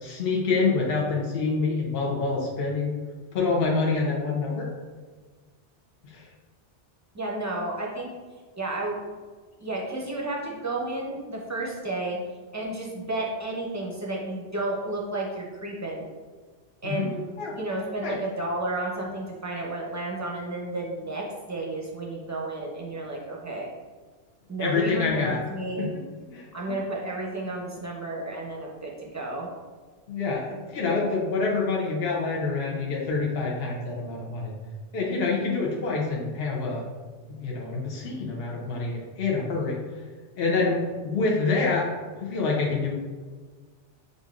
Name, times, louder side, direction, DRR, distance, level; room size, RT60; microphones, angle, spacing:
voice 1, 0.0-2.9 3.3-4.7 6.0-6.3 16.8-17.1 17.4-17.5 18.0-18.1 24.6-25.4 25.8-25.9 26.3-26.8 30.1-34.5 34.9-36.8 37.3-39.8 40.4-41.9 42.2-42.9, left 4 dB, 60° left, -3 dB, 0.9 m, -26 dB
voice 2, 7.1-8.1 8.6-9.0 9.6-12.2 12.5-16.1 16.8-17.2 17.5-23.7 24.5-25.9 26.5-29.5, right 2 dB, 20° right, -3 dB, 0.5 m, -32 dB
6.4 x 2.6 x 2.4 m, 1.5 s
omnidirectional pair, 1.2 m